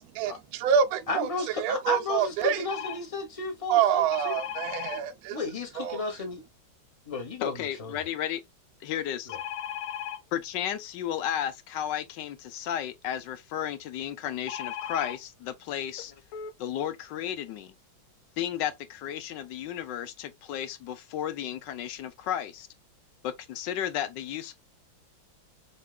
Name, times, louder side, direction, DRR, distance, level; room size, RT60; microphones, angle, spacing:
voice 1, 0.0-1.3 1.6-2.6 3.7-5.4 5.8-6.0, right 8 dB, 80° right, 0.8 m, -26 dB
voice 2, 1.1-4.4 4.9-5.0 5.3-6.4 7.1-8.0 9.3-9.4, left 4 dB, 25° left, 0.8 m, -34 dB
sound 1, 2.7-3.0 4.1-5.0 9.3-10.2 14.5-15.2 16.0-16.1 16.3-16.5, left 10 dB, 85° left, 1.5 m, -36 dB
voice 3, 7.4-8.4 8.8-9.4 10.3-16.1 16.6-17.7 18.4-22.7 23.2-24.5, left 10 dB, 70° left, 1.2 m, -33 dB
6.6 x 3.0 x 2.2 m
omnidirectional pair, 2.2 m